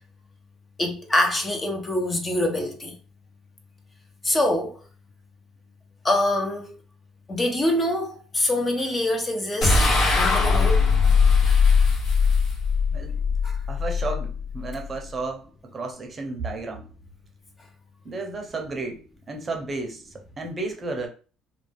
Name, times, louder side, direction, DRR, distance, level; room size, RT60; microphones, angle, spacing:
voice 1, 0.8-2.9 4.2-4.8 6.0-6.8 7.3-10.8 13.4-13.6, left 1 dB, 20° left, 0.6 m, -25 dB
sound 1, 9.6-15.0, left 5 dB, 60° left, 1.0 m, -20 dB
voice 2, 13.7-16.9 18.0-21.1, right 3 dB, 25° right, 0.7 m, -33 dB
2.5 x 2.2 x 3.3 m
cardioid pair, 115°, 0 cm